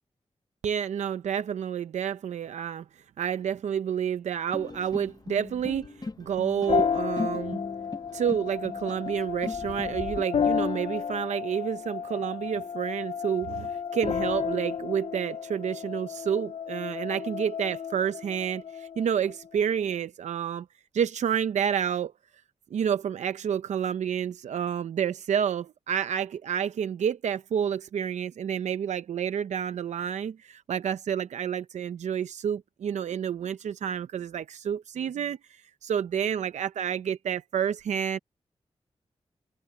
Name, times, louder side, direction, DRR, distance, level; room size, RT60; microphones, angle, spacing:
voice 1, 0.6-2.9 3.2-7.6 8.1-20.7 20.9-22.1 22.7-38.2, right 8 dB, 85° right, 0.6 m, -29 dB
sound 1, 4.5-10.2, left 3 dB, 35° left, 1.1 m, -39 dB
sound 2, 6.7-19.9, left 7 dB, 60° left, 0.5 m, -32 dB
cardioid pair, 55°, 12 cm